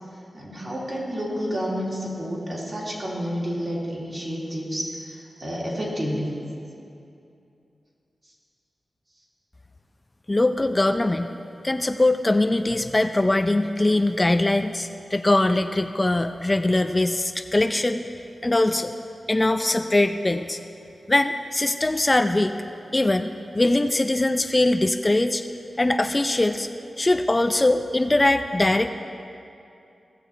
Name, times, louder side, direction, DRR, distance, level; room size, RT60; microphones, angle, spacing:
voice 1, 0.1-6.3, equal, 50° right, -5 dB, 3.1 m, -30 dB
voice 2, 10.3-11.3 11.6-18.0 18.4-18.9 19.3-20.6 21.1-22.5 22.9-25.4 25.8-26.7 27.0-28.9, left 2 dB, 30° left, 7 dB, 0.5 m, -21 dB
16.0 x 6.9 x 4.5 m, 2.6 s
cardioid pair, 45°, 0 cm